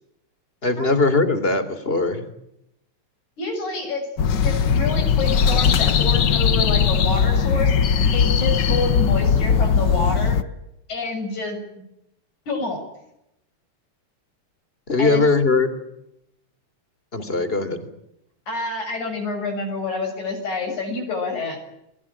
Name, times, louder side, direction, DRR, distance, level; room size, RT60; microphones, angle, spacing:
voice 1, 0.6-2.3 14.9-15.7 17.1-17.8, left 3 dB, 20° left, 12 dB, 3.4 m, -20 dB
voice 2, 3.4-4.1 4.4-7.7 8.1-10.4 10.9-11.8 12.5-12.8 15.0-15.2 18.5-21.6, left 3 dB, 80° left, 4 dB, 8.5 m, -28 dB
sound 1, 4.2-10.4, left 6 dB, 50° left, 1.4 m, -19 dB
29.5 x 22.5 x 8.8 m, 0.84 s
omnidirectional pair, 3.3 m